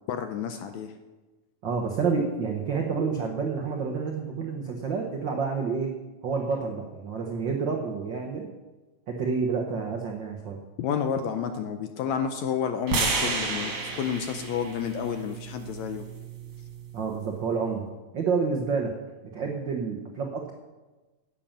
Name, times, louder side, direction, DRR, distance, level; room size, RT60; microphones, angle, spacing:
voice 1, 0.1-0.9 10.8-16.0, left 7 dB, 75° left, 7 dB, 1.7 m, -30 dB
voice 2, 1.6-5.9 6.2-8.5 9.1-10.6 16.9-17.8 18.1-18.9 19.3-20.5, right 5 dB, 85° right, 1 dB, 1.0 m, -29 dB
sound 1, 12.9-17.1, right 4 dB, 60° right, 3.2 m, -32 dB
10.5 x 8.7 x 7.3 m, 1.2 s
omnidirectional pair, 3.8 m